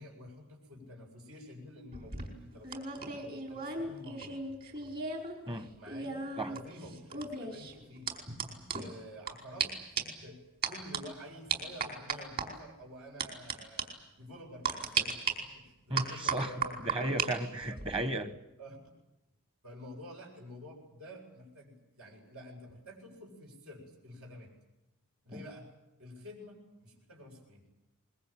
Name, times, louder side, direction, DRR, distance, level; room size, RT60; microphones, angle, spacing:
voice 1, 0.0-4.3 5.7-8.1 8.7-16.7 17.8-17.9 18.6-18.8 19.6-24.5 25.2-25.7 26.0-27.7, equal, 75° right, 0 dB, 7.9 m, -50 dB
sound 1, 1.9-5.3 5.6-9.3 9.6-9.7 10.0-10.2 10.6-11.0 11.5-12.5 13.2-13.5 13.8-13.9 14.6-15.3 16.0-17.3 17.6-18.0, right 5 dB, 45° right, 5.1 m, -35 dB
voice 2, 15.9-16.5 16.8-18.3 25.3-25.4, right 1 dB, 25° right, 11 dB, 1.6 m, -34 dB
24.5 x 22.0 x 9.0 m, 0.96 s
head